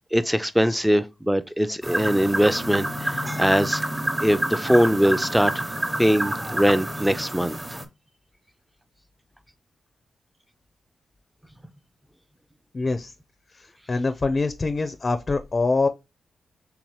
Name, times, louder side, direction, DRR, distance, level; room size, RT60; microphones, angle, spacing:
voice 1, 0.1-3.8 4.2-5.6 6.0-7.8, equal, 5° right, 0.5 m, -22 dB
sound 1, 1.8-7.8, right 1 dB, 20° right, 1.0 m, -28 dB
voice 2, 12.7-13.1 13.9-15.9, left 3 dB, 45° left, 0.5 m, -24 dB
3.5 x 2.9 x 4.7 m
supercardioid pair, 45°, 0 cm